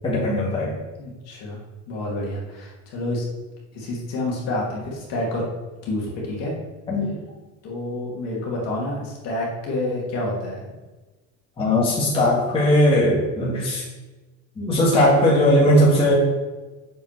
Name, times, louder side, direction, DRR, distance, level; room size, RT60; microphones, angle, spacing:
voice 1, 0.0-0.7 6.9-7.1 11.6-13.8 14.6-16.1, left 1 dB, 15° left, -6 dB, 2.0 m, -18 dB
voice 2, 1.0-1.6 1.9-3.3 3.7-5.4 5.8-6.5 7.6-10.6, left 1 dB, 50° left, -3 dB, 2.5 m, -28 dB
7.5 x 5.3 x 6.0 m, 1.2 s
cardioid pair, 170°, 32 cm